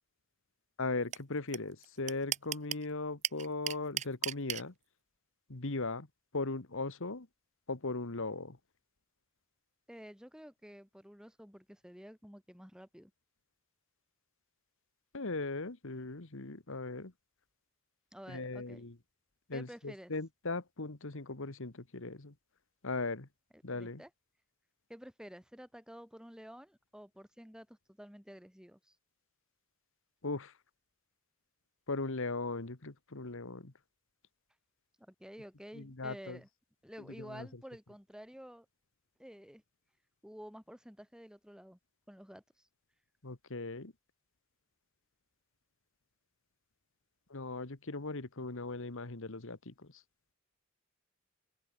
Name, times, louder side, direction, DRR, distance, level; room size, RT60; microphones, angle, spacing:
voice 1, 0.8-4.7 5.5-6.1 6.3-7.3 7.7-8.6 15.1-17.1 18.3-19.0 19.5-22.3 22.8-23.3 23.6-24.0 30.2-30.5 31.9-33.7 35.7-36.4 37.2-37.5 43.2-43.9 47.3-50.0, left 3 dB, 65° left, 1.7 m, -38 dB
sound 1, 1.1-1.2 1.5-1.6 1.8-2.8 3.2-4.6, right 11 dB, 35° right, 0.4 m, -34 dB
voice 2, 9.9-13.1 18.1-18.8 19.5-20.1 23.5-24.1 24.9-29.0 35.0-36.5 36.8-38.7 39.2-39.6 40.2-41.8 42.1-42.7, equal, 5° right, 6.4 m, -51 dB
open air
head